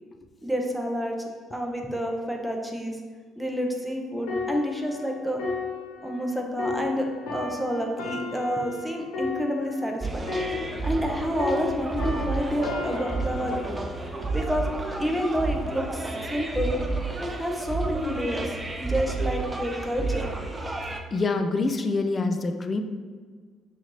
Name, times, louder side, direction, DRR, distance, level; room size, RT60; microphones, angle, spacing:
voice 1, 0.4-1.2 1.5-3.0 3.4-5.4 6.0-10.3 10.8-13.8 14.3-14.7 15.0-16.8 17.2-20.3, equal, 5° right, 1 dB, 0.9 m, -29 dB
sound 1, 4.3-11.1 11.4-15.0 15.6-15.8, left 4 dB, 75° left, 1.2 m, -35 dB
sound 2, 10.0-21.0, right 3 dB, 25° right, 0.6 m, -31 dB
voice 2, 21.1-22.8, left 3 dB, 35° left, 7 dB, 0.5 m, -25 dB
6.2 x 2.7 x 3.1 m, 1.5 s
hypercardioid pair, 55°, 0 cm